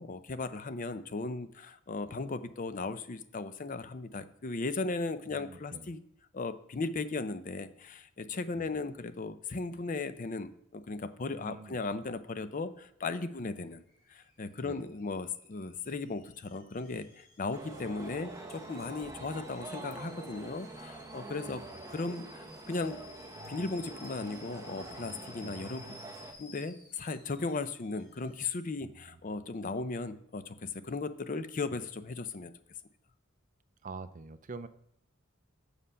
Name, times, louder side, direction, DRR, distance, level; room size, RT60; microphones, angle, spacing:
voice 1, 0.0-6.0 6.3-13.8 14.1-21.6 21.9-23.0 23.5-25.8 26.4-32.5, left 3 dB, 40° left, 12 dB, 0.5 m, -37 dB
voice 2, 5.3-5.9 8.5-8.7 11.4-11.8 14.6-14.9 21.2-21.9 25.4-25.6 28.8-29.2 33.8-34.7, right 4 dB, 40° right, 13 dB, 0.4 m, -47 dB
Alarm / Boiling, 13.9-28.7, left 2 dB, 60° left, 4.0 m, -56 dB
sound 1, 17.5-26.3, right 2 dB, 15° right, 1.0 m, -46 dB
7.5 x 6.7 x 5.6 m, 0.73 s
head